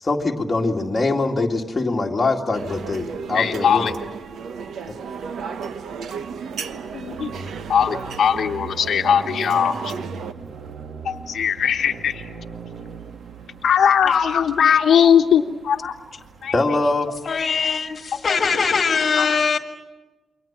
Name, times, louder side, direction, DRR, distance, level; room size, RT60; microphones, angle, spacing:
voice 1, 0.0-3.9 4.9-5.0 16.5-17.1, left 2 dB, 20° left, 0 dB, 2.2 m, -23 dB
sound 1, 2.5-18.3, right 4 dB, 55° right, 1.4 m, -41 dB
sound 2, 2.5-10.3, right 6 dB, 80° right, 1.2 m, -34 dB
voice 2, 3.3-3.9 6.9-7.3 7.7-9.9 11.0-12.3 13.6-15.9 16.4-16.5 17.6-17.7 18.3-18.4 19.2-19.3, left 8 dB, 65° left, 3 dB, 1.1 m, -19 dB
voice 3, 17.3-19.6, left 5 dB, 40° left, 6 dB, 2.0 m, -21 dB
28.5 x 23.5 x 7.4 m, 1.2 s
wide cardioid pair, 180°, 0 cm